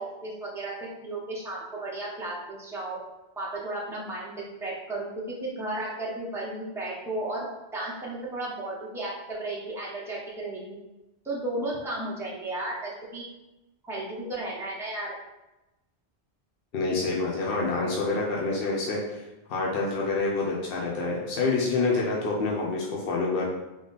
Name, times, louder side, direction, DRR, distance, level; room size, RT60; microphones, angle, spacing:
voice 1, 0.0-3.0 3.4-7.4 7.7-10.8 11.2-13.3 13.8-15.1, right 2 dB, 5° right, -6 dB, 0.9 m, -34 dB
voice 2, 16.7-19.2 19.5-23.5, left 3 dB, 65° left, -3 dB, 1.0 m, -27 dB
3.6 x 3.4 x 4.0 m, 0.99 s
omnidirectional pair, 1.1 m